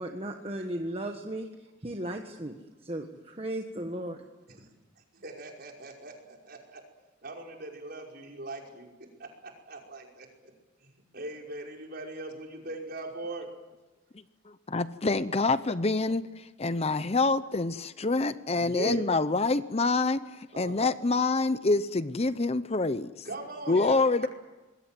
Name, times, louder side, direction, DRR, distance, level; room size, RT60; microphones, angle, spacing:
voice 1, 0.0-1.5 1.8-2.6 2.8-4.2, right 1 dB, 30° right, 4 dB, 1.5 m, -35 dB
voice 2, 5.1-6.8 7.2-8.9 9.2-10.3 11.1-13.5 18.5-19.1 20.5-20.8 23.2-24.1, right 2 dB, 50° right, 0 dB, 5.5 m, -40 dB
voice 3, 14.7-16.2 16.6-20.2 20.6-23.1 23.7-24.3, left 3 dB, 30° left, 13 dB, 0.7 m, -26 dB
26.5 x 21.5 x 7.7 m, 1.1 s
head